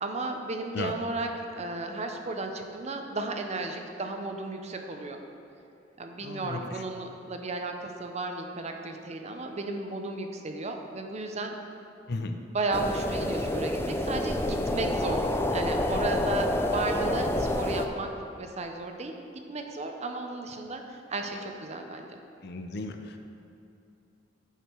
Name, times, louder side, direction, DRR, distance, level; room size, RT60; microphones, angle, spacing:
voice 1, 0.0-5.2 6.0-11.6 12.4-18.1 18.4-19.2 19.5-22.2, right 2 dB, 35° right, 4 dB, 0.7 m, -34 dB
voice 2, 6.2-6.8 12.1-12.4 22.4-23.2, left 2 dB, 60° left, 6 dB, 0.6 m, -35 dB
sound 1, 12.7-17.9, left 1 dB, 15° left, 0.4 m, -28 dB
8.0 x 6.5 x 4.5 m, 2.7 s
head